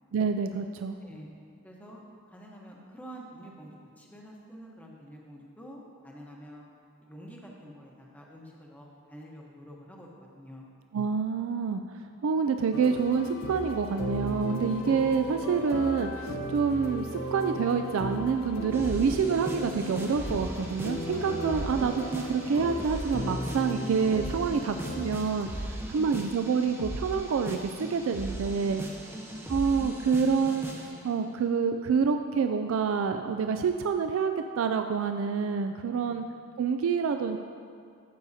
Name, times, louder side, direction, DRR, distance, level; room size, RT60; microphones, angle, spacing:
voice 1, 0.1-1.0 10.9-11.8 12.2-25.5 25.9-28.8 29.5-36.2 36.6-37.4, right 5 dB, 65° right, 7 dB, 0.3 m, -27 dB
voice 2, 1.6-2.0 2.3-6.6 7.0-10.1 10.3-10.7 25.7-26.1 29.0-29.4 35.9-36.2, equal, 5° left, -2 dB, 0.9 m, -48 dB
sound 1, 12.7-25.4, left 1 dB, 65° left, 0.8 m, -36 dB
sound 2, 18.7-31.0, right 1 dB, 10° right, 0.6 m, -38 dB
sound 3, 19.8-25.1, right 1 dB, 45° right, 1.0 m, -54 dB
12.0 x 7.8 x 2.7 m, 2.3 s
head